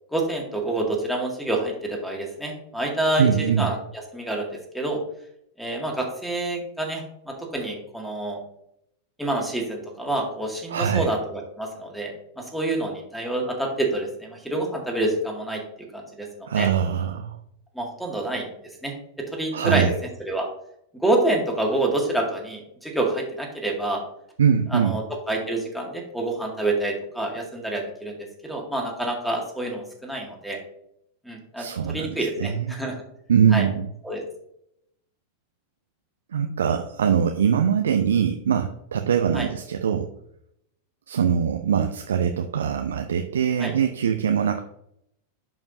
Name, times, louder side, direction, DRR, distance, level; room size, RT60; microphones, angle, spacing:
voice 1, 0.1-3.8 4.1-5.0 5.6-8.4 9.2-15.6 15.9-16.7 17.8-18.5 18.8-19.9 20.2-20.5 20.9-24.0 24.7-28.2 28.4-30.6 31.3-32.9 33.5-33.6 34.0-34.2 39.3-39.5 43.6-43.7, right 2 dB, ahead, 1 dB, 2.0 m, -27 dB
voice 2, 3.2-3.7 10.7-11.1 16.5-17.4 19.5-19.9 24.4-24.9 31.6-32.8 33.3-33.9 36.3-40.1 41.1-44.6, right 8 dB, 65° right, 6 dB, 0.5 m, -22 dB
11.0 x 5.2 x 2.6 m, 0.74 s
figure-of-eight pair, 90°, 0 cm